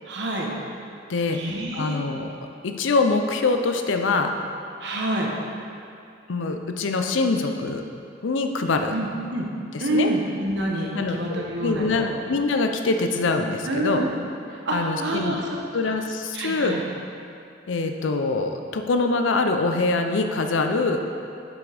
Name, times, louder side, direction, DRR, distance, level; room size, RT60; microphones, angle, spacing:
voice 1, 0.0-0.5 1.3-2.0 4.8-5.3 8.9-9.5 9.8-12.1 13.7-14.1 14.6-15.6 16.3-16.8, right 1 dB, 65° right, -1 dB, 1.0 m, -27 dB
voice 2, 1.1-1.4 1.7-4.3 6.3-7.8 8.2-8.9 9.7-10.1 10.9-14.0 14.7-15.4 15.7-16.8 17.7-21.0, left 3 dB, 85° left, 5 dB, 0.5 m, -24 dB
7.5 x 5.9 x 3.4 m, 2.5 s
head